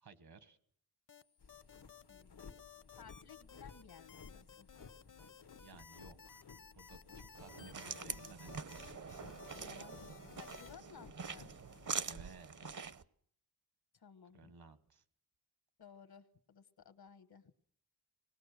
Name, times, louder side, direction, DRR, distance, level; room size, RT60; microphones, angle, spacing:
voice 1, 0.0-0.6 5.5-6.5 6.7-8.7 12.0-12.9 14.3-15.0, right 4 dB, 75° right, 11 dB, 1.6 m, -58 dB
sound 1, 1.1-10.7, left 7 dB, 55° left, 0.8 m, -57 dB
sound 2, 1.4-12.8, left 5 dB, 90° left, 1.3 m, -58 dB
voice 2, 2.1-2.6 3.0-4.7 7.7-8.1 9.6-11.5 13.9-14.5 15.8-17.5, left 6 dB, 70° left, 11 dB, 1.3 m, -58 dB
sound 3, 7.3-13.0, right 6 dB, 50° right, 0.8 m, -45 dB
25.0 x 20.0 x 6.7 m, 0.65 s
wide cardioid pair, 95°, 39 cm